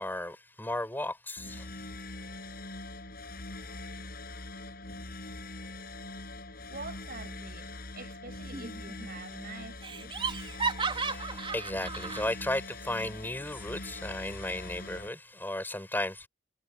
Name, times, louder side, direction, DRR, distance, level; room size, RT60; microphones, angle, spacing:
voice 1, 0.0-1.7 10.9-16.3, left 1 dB, 10° left, 6.7 m, -35 dB
sound 1, 1.4-15.1, left 2 dB, 50° left, 6.9 m, -43 dB
voice 2, 6.7-10.2, right 3 dB, 50° right, 7.9 m, -46 dB
Laughter, 8.5-9.1 9.3-9.4 9.8-12.3, right 4 dB, 25° right, 5.0 m, -34 dB
head